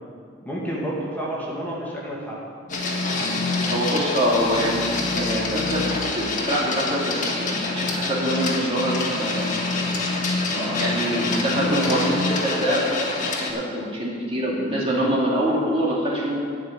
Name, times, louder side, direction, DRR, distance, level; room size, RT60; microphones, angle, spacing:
voice 1, 0.4-2.4 10.5-12.0 14.9-15.1, equal, 10° left, -5 dB, 2.0 m, -31 dB
sound 1, 2.7-12.3, left 3 dB, 65° left, 0.7 m, -31 dB
Printer, 2.7-13.5, left 3 dB, 45° left, 1.6 m, -27 dB
voice 2, 3.7-5.9 6.1-9.8 10.5-16.4, equal, 30° right, -4 dB, 2.2 m, -25 dB
12.5 x 5.3 x 9.0 m, 2.2 s
head